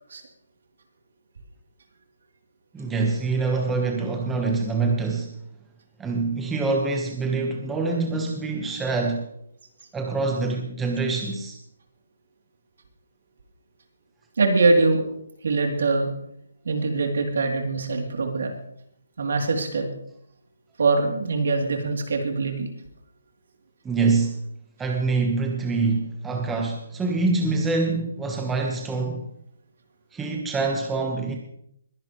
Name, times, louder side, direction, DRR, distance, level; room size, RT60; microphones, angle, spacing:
voice 1, 2.7-5.4 6.0-9.3 9.9-11.6 23.8-24.4 24.8-29.3 30.1-31.4, right 3 dB, 10° right, 1 dB, 1.3 m, -25 dB
voice 2, 14.4-15.0 15.4-16.1 16.6-18.5 19.2-19.8 20.8-22.7, right 3 dB, 65° right, 3 dB, 3.2 m, -23 dB
21.5 x 10.5 x 3.2 m, 0.71 s
hypercardioid pair, 165°, 0 cm